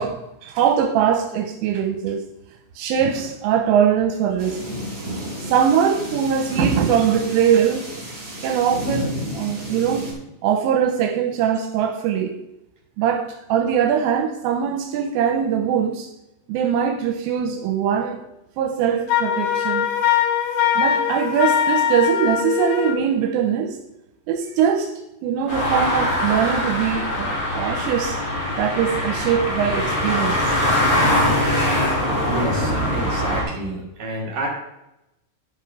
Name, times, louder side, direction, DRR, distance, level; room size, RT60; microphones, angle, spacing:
voice 1, 0.0-2.2 2.8-4.6 5.4-7.8 8.4-10.1 10.4-12.3 13.0-16.1 16.5-18.2 18.6-19.9 20.8-23.8 24.3-24.9 25.2-28.2 28.6-30.6, right 8 dB, 85° right, 4 dB, 3.3 m, -21 dB
sound 1, 4.4-10.1, equal, 20° right, 3.9 m, -31 dB
Wind instrument woodwind instrument, 19.1-23.0, left 9 dB, 80° left, 2.2 m, -21 dB
sound 2, 25.5-33.4, left 1 dB, 25° left, 4.3 m, -22 dB
voice 2, 32.3-34.5, right 1 dB, 55° right, -2 dB, 2.5 m, -29 dB
12.0 x 5.9 x 4.9 m, 0.89 s
omnidirectional pair, 5.8 m